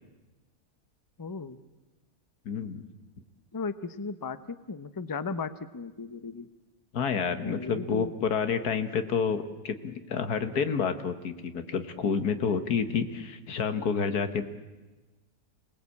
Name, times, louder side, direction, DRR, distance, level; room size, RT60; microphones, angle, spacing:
voice 1, 1.2-1.6 3.5-6.5 7.4-8.1, left 4 dB, 20° left, 13 dB, 0.6 m, -36 dB
voice 2, 2.5-2.8 6.9-14.5, left 6 dB, 85° left, 9 dB, 1.9 m, -29 dB
27.5 x 19.0 x 8.5 m, 1.2 s
omnidirectional pair, 1.6 m